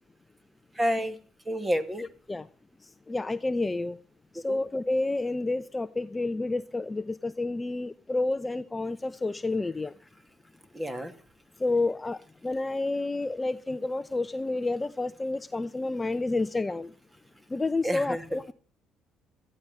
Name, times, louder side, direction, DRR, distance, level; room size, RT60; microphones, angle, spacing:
voice 1, 0.8-1.2 1.5-2.0 4.5-4.6 10.7-11.1 17.8-18.4, equal, 15° right, 10 dB, 2.4 m, -29 dB
voice 2, 3.1-4.0 4.4-9.9 11.6-12.2 12.4-16.9 17.5-18.5, left 2 dB, 20° left, 11 dB, 0.8 m, -29 dB
14.5 x 13.0 x 6.7 m, 0.41 s
supercardioid pair, 75°, 0 cm